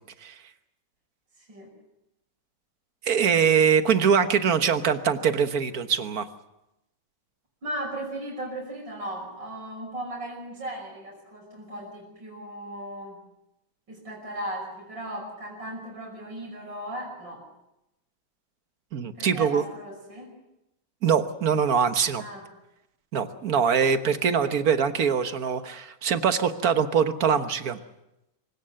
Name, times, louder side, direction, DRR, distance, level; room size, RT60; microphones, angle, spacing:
voice 1, 1.4-1.7 7.6-13.2 13.9-17.4 19.2-20.3 22.2-22.4, right 1 dB, 70° right, -3 dB, 6.4 m, -37 dB
voice 2, 3.0-6.3 18.9-19.6 21.0-22.2 23.1-27.8, right 7 dB, 50° right, 9 dB, 1.6 m, -23 dB
26.0 x 17.0 x 7.7 m, 0.90 s
omnidirectional pair, 2.1 m